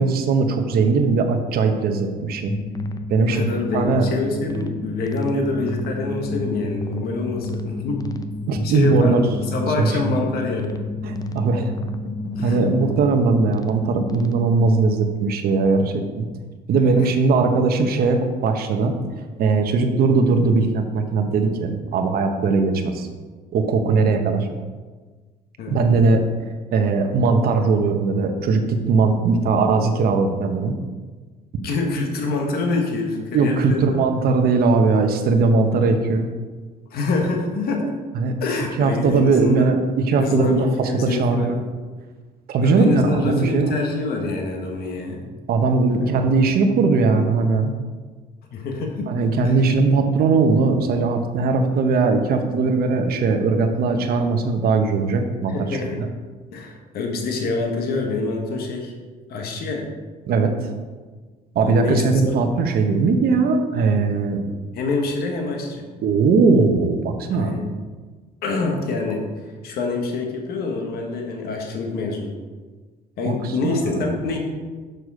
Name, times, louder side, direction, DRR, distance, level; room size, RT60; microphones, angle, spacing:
voice 1, 0.0-2.5 3.1-3.4 3.7-4.1 8.5-9.3 9.8-9.9 11.0-11.7 12.4-16.3 16.7-18.9 19.4-23.1 23.5-24.5 25.7-26.2 26.7-30.7 33.3-36.3 38.1-38.3 38.8-41.7 42.5-43.7 45.5-47.7 49.1-55.5 55.9-56.1 60.3-60.7 61.5-64.5 66.0-67.6 73.2-74.1, right 4 dB, 65° right, 5 dB, 1.1 m, -19 dB
sound 1, 2.5-14.7, left 2 dB, 20° left, 0.6 m, -30 dB
voice 2, 3.3-8.0 8.6-9.2 9.5-10.8 12.4-12.6 25.6-25.8 31.6-34.0 36.9-37.9 38.4-39.7 40.2-41.5 42.6-45.2 48.5-49.1 49.4-49.5 55.5-56.0 56.5-58.9 59.3-59.9 61.6-62.4 64.7-65.8 67.3-67.7 68.4-69.2 69.6-72.4 73.2-74.4, left 3 dB, 65° left, 2 dB, 1.4 m, -26 dB
6.7 x 6.1 x 4.9 m, 1.4 s
cardioid pair, 110°, 17 cm